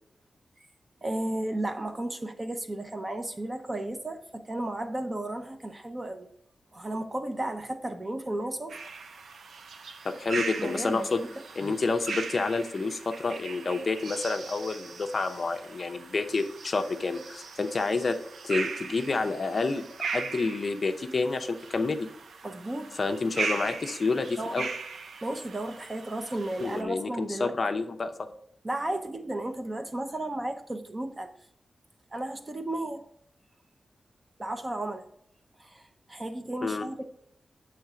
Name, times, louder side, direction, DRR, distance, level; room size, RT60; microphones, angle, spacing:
voice 1, 1.0-6.3 6.7-8.8 10.6-11.3 22.4-23.0 24.4-24.7 25.2-27.6 28.6-31.3 32.1-33.0 34.4-35.1 35.6-37.0, right 1 dB, 25° right, 6 dB, 0.6 m, -34 dB
sound 1, 8.7-26.8, right 5 dB, 80° right, 0.4 m, -39 dB
voice 2, 10.0-11.2 11.6-18.2 18.4-19.8 20.1-22.1 23.0-24.7 26.6-28.1 36.6-36.8, left 3 dB, 45° left, 7 dB, 0.5 m, -29 dB
7.8 x 3.2 x 4.8 m, 0.71 s
wide cardioid pair, 150°, 0 cm